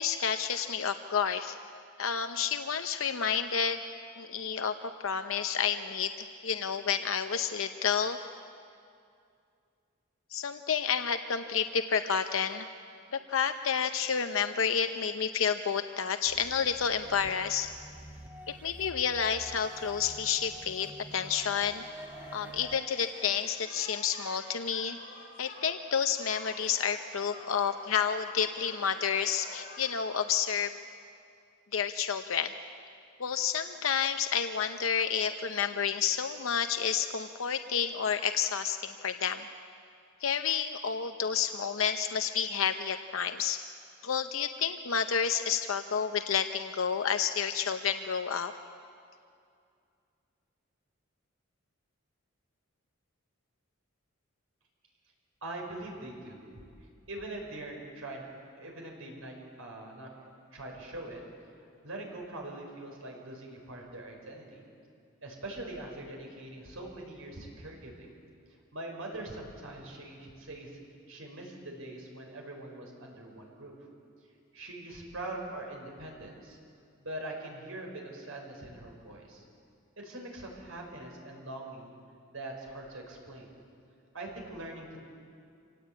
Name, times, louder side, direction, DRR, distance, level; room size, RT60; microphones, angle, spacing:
voice 1, 0.0-1.5 2.0-3.8 4.2-8.2 10.3-12.7 13.1-17.7 18.6-21.8 22.3-25.0 25.4-30.7 31.7-32.5 33.2-39.4 40.2-43.6 44.0-48.5, left 7 dB, 75° left, 8 dB, 0.7 m, -30 dB
sound 1, 16.2-22.8, right 1 dB, 10° right, 0.6 m, -48 dB
sound 2, 21.1-30.0, left 2 dB, 35° left, 6.6 m, -50 dB
voice 2, 55.4-56.5 57.1-58.3 58.6-60.1 60.5-61.2 61.5-64.7 65.2-68.1 68.7-70.8 71.1-73.8 74.5-76.6 77.0-79.4 80.0-82.0 82.3-83.5 84.1-85.0, right 1 dB, 80° right, 1 dB, 5.1 m, -42 dB
26.0 x 18.0 x 8.6 m, 2.4 s
head